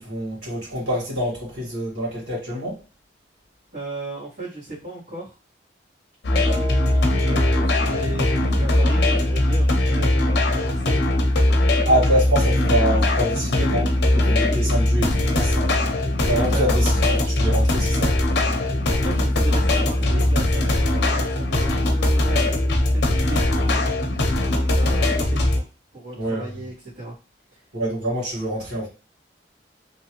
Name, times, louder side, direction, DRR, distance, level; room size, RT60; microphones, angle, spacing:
voice 1, 0.0-2.8 11.9-15.8 16.2-18.1 26.2-26.5 27.7-28.9, right 1 dB, 75° right, 1.6 m, -25 dB
voice 2, 3.7-5.4 6.4-11.0 16.5-16.8 18.9-25.7 25.9-27.1 27.5-27.6, right 2 dB, 50° right, 1.5 m, -36 dB
sound 1, 6.2-25.6, left 1 dB, 60° left, 0.6 m, -20 dB
sound 2, 6.4-10.4, left 1 dB, 30° right, 0.8 m, -39 dB
3.0 x 2.5 x 2.9 m
head